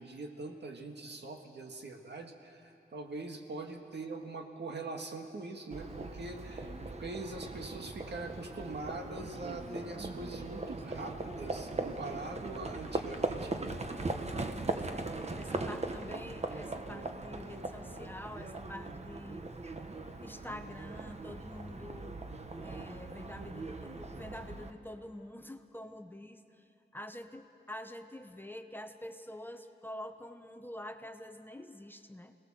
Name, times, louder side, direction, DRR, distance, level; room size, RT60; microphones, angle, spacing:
voice 1, 0.0-6.7 7.0-13.7, right 3 dB, 65° right, 3 dB, 1.9 m, -43 dB
Livestock farm animals working animals, 5.7-24.7, right 2 dB, 35° right, 1.2 m, -39 dB
voice 2, 14.7-19.4 20.2-22.2 22.6-26.7 26.9-32.3, left 1 dB, 10° left, 7 dB, 0.8 m, -46 dB
26.0 x 18.5 x 7.6 m, 2.7 s
wide cardioid pair, 110°, 19 cm